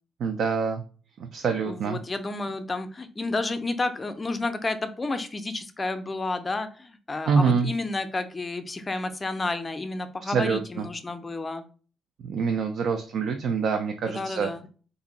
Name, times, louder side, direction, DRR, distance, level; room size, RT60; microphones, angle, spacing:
voice 1, 0.2-0.8 1.3-2.0 7.3-7.7 10.2-10.6 12.2-14.5, right 5 dB, 70° right, 4 dB, 0.4 m, -25 dB
voice 2, 1.6-11.6 14.1-14.7, left 2 dB, 25° left, 9 dB, 0.5 m, -31 dB
2.8 x 2.6 x 3.9 m, 0.38 s
cardioid pair, 90°, 0 cm